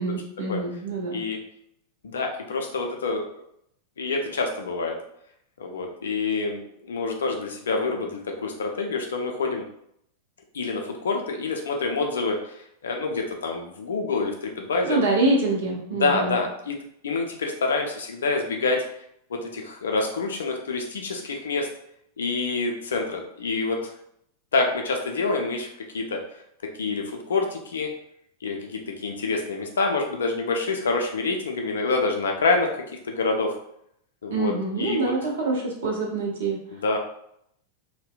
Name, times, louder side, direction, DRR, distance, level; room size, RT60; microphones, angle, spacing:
voice 1, 0.0-1.2 14.9-16.4 34.3-36.6, right 2 dB, 60° right, -2 dB, 0.6 m, -25 dB
voice 2, 2.0-3.3 4.0-5.0 5.6-9.6 10.5-12.5 12.8-15.0 15.9-16.8 17.0-18.8 19.3-21.7 22.2-23.9 24.5-25.7 25.9-26.2 26.8-27.9 28.4-32.7 33.1-33.5 34.2-35.1 36.7-37.0, left 3 dB, 65° left, 2 dB, 0.4 m, -27 dB
2.6 x 2.0 x 2.3 m, 0.73 s
figure-of-eight pair, 90°, 0 cm